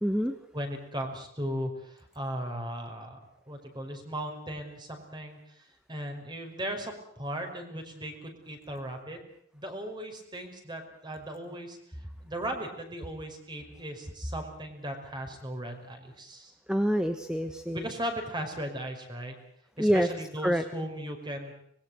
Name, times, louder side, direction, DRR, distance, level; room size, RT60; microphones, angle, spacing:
voice 1, 0.0-0.4 16.7-17.8 19.8-20.1 20.4-20.6, equal, 5° right, 8 dB, 1.3 m, -26 dB
voice 2, 0.5-3.2 3.5-9.2 9.5-11.8 12.2-16.5 17.7-19.4 19.8-21.5, right 1 dB, 25° right, 5 dB, 5.3 m, -37 dB
24.5 x 21.5 x 7.9 m, 0.68 s
head